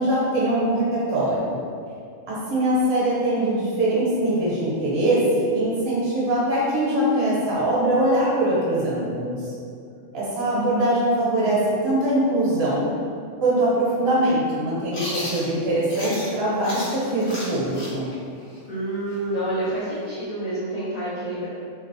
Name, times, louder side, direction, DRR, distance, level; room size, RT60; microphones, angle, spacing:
voice 1, 0.0-1.6 2.3-9.4 10.1-12.9 13.4-18.1, right 1 dB, 55° right, -7 dB, 0.9 m, -22 dB
Chewing mastication, 14.9-16.3 16.6-20.2, equal, 60° left, 0.9 m, -34 dB
voice 2, 18.7-21.5, right 1 dB, 75° left, -10 dB, 0.3 m, -28 dB
2.6 x 2.0 x 2.5 m, 2.3 s
omnidirectional pair, 1.3 m